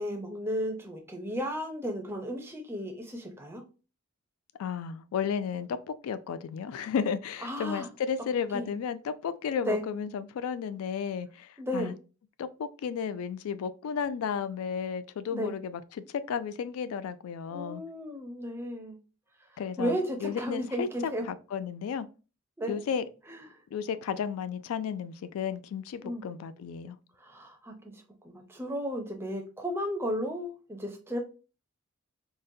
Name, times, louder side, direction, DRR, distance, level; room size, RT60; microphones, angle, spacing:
voice 1, 0.0-3.6 7.4-7.9 8.5-8.7 9.6-9.8 11.6-11.9 15.3-15.5 17.5-19.0 19.8-21.2 22.6-22.8 23.3-23.5 26.0-26.2 27.2-31.2, equal, 10° right, 0.5 m, -34 dB
voice 2, 4.6-11.9 12.4-15.8 16.3-17.8 19.6-22.1 22.7-23.0 23.7-27.0, left 7 dB, 80° left, 0.3 m, -33 dB
3.8 x 2.1 x 2.6 m
head